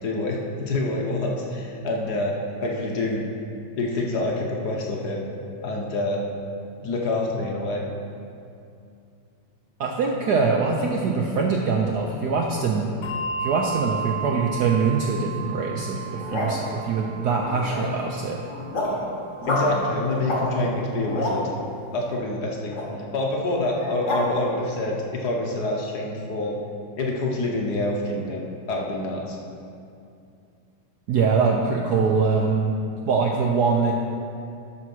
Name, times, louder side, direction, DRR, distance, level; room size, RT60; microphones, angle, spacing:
voice 1, 0.0-2.3 2.6-3.3 3.8-5.2 5.6-6.2 6.8-7.8 19.5-21.4 21.9-22.8 23.1-26.6 27.0-29.4, left 2 dB, 55° left, -1 dB, 1.3 m, -26 dB
voice 2, 9.8-12.9 13.4-18.4 31.1-32.8 33.1-33.9, right 4 dB, 70° right, 0 dB, 1.0 m, -23 dB
Bell, 13.0-19.9, right 5 dB, 75° left, 1.6 m, -34 dB
sound 1, 16.0-16.7 17.4-18.0 18.4-19.0 19.4-19.7 20.2-20.4 20.8-21.4 22.7-22.8 23.7-24.2, left 1 dB, 35° left, 2.0 m, -28 dB
12.0 x 4.5 x 6.0 m, 2.5 s
omnidirectional pair, 2.4 m